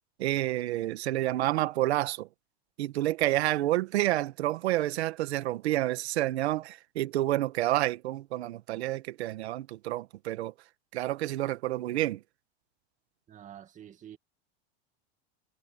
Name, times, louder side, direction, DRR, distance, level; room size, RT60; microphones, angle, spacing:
voice 1, 0.2-2.3 2.8-10.5 10.9-12.2, right 15 dB, 85° right, 1.8 m, -29 dB
voice 2, 13.3-14.2, right 10 dB, 25° right, 2.3 m, -48 dB
supercardioid pair, 150°, 32 cm